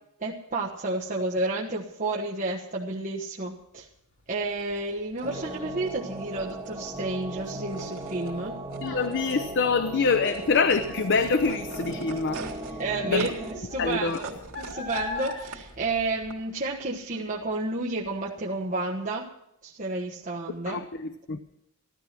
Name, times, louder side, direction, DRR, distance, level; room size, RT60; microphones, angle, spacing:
voice 1, 0.2-3.9 4.3-8.5 12.8-14.3 14.6-19.3 19.6-20.8, right 2 dB, 35° right, 1.3 m, -31 dB
Child speech kid speaking, 4.1-16.8 17.1-17.5 18.0-18.1, left 3 dB, 80° left, 6.1 m, -42 dB
sound 1, 4.4-16.3, right 3 dB, 80° right, 2.7 m, -44 dB
sound 2, 5.2-13.6, right 2 dB, 15° right, 1.7 m, -38 dB
voice 2, 8.8-12.8 13.1-13.3 13.8-14.2 20.7-21.4, left 4 dB, 55° left, 0.7 m, -25 dB
15.0 x 13.0 x 6.1 m
head